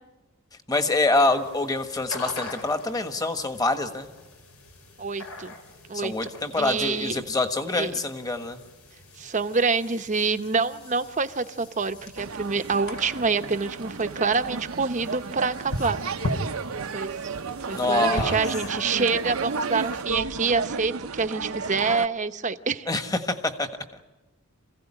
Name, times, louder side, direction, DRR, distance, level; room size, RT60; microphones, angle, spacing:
voice 1, 0.7-4.1 5.9-8.6 17.7-18.4 22.9-24.0, left 2 dB, 15° left, 7 dB, 1.4 m, -25 dB
sound 1, 1.2-20.0, left 1 dB, 90° left, 3.8 m, -40 dB
voice 2, 5.0-5.5 5.9-6.3 6.6-7.2 7.7-7.9 9.2-16.0 16.9-17.3 17.7-22.9, right 4 dB, 35° right, 9 dB, 0.8 m, -26 dB
sound 2, 12.1-22.1, right 4 dB, 75° right, 0.8 m, -33 dB
27.0 x 16.5 x 9.9 m, 1.1 s
head